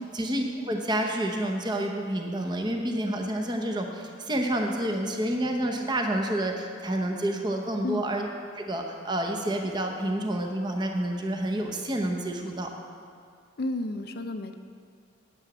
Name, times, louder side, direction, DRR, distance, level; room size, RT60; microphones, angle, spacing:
voice 1, 0.0-8.3 8.6-12.7, right 1 dB, 20° right, 3 dB, 0.8 m, -29 dB
voice 2, 13.6-14.5, left 2 dB, 50° left, 8 dB, 0.5 m, -32 dB
9.8 x 8.5 x 6.0 m, 2.3 s
head